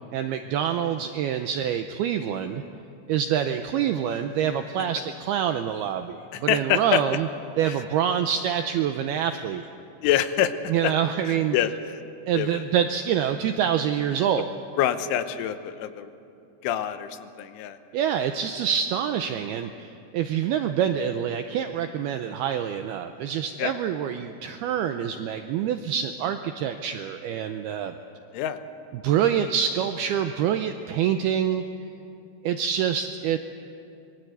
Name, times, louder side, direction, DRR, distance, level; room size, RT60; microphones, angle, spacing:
voice 1, 0.1-2.6 3.1-7.3 7.6-9.6 10.7-11.6 12.3-14.5 17.9-28.0 28.9-31.6 32.4-33.4, right 9 dB, 85° right, 7 dB, 2.2 m, -26 dB
voice 2, 6.3-7.0 10.0-10.5 10.8-10.9 11.3-11.7 12.3-12.5 14.8-16.1 16.6-17.8 23.6-23.7 28.3-28.6, left 11 dB, 90° left, 10 dB, 3.5 m, -25 dB
26.0 x 22.5 x 8.2 m, 2.6 s
omnidirectional pair, 5.4 m